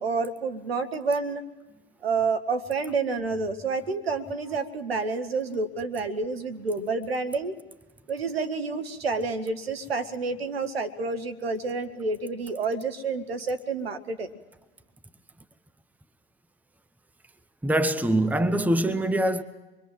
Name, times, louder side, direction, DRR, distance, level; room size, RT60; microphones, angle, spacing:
voice 1, 0.0-1.4 2.0-7.6 8.1-14.3, right 4 dB, 85° right, 1.8 m, -29 dB
voice 2, 17.6-19.4, right 1 dB, 5° right, 1.2 m, -23 dB
26.0 x 22.5 x 7.7 m
hypercardioid pair, 70°, 29 cm